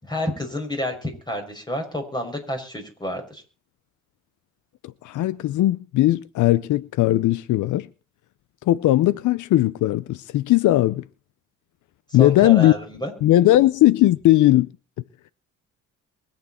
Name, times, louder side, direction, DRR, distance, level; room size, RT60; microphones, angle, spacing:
voice 1, 0.0-3.4 12.2-13.1, left 1 dB, 15° left, 5.9 m, -29 dB
voice 2, 5.0-7.9 8.7-11.0 12.1-12.7 13.2-14.7, left 15 dB, 75° left, 0.6 m, -18 dB
23.5 x 8.7 x 4.3 m
cardioid pair, 90°, 30 cm